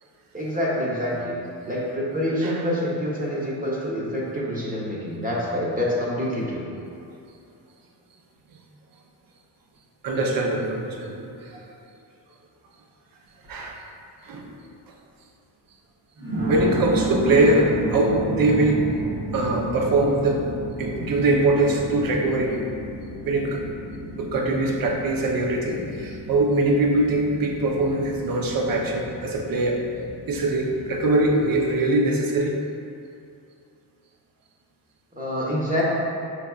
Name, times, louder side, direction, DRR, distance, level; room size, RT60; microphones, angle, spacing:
voice 1, 0.3-1.3 1.7-6.6 35.2-35.8, equal, 20° right, -5 dB, 1.0 m, -26 dB
voice 2, 10.0-11.6 13.5-13.8 14.2-14.5 16.5-18.8 19.3-20.4 20.8-22.6 23.3-23.6 24.2-29.8 30.3-32.6, right 2 dB, 50° right, 1 dB, 0.7 m, -22 dB
sound 1, 13.4-13.7 14.3-14.4 16.2-31.7, equal, 75° right, 1.4 m, -32 dB
5.2 x 3.4 x 2.4 m, 2.5 s
supercardioid pair, 65°, 46 cm